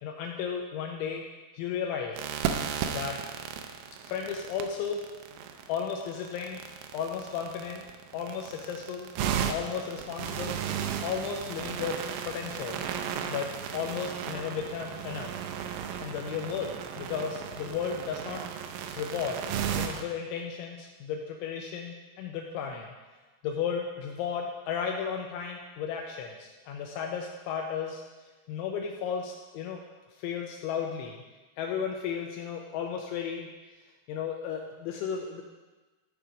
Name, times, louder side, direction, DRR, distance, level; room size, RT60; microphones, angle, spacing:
voice 1, 0.0-1.2 1.5-2.2 2.9-3.2 4.1-5.0 5.7-6.6 6.9-7.8 8.1-9.1 9.5-10.6 11.0-12.0 12.2-12.8 13.3-15.4 16.0-18.4 19.0-19.4 19.7-22.9 23.4-28.0 28.5-29.8 30.2-31.2 31.6-33.5 34.1-35.4, left 7 dB, 80° left, 1 dB, 2.8 m, -34 dB
sound 1, 2.2-20.0, right 8 dB, 80° right, 2.7 m, -35 dB
13.0 x 4.8 x 5.0 m, 1.3 s
omnidirectional pair, 5.9 m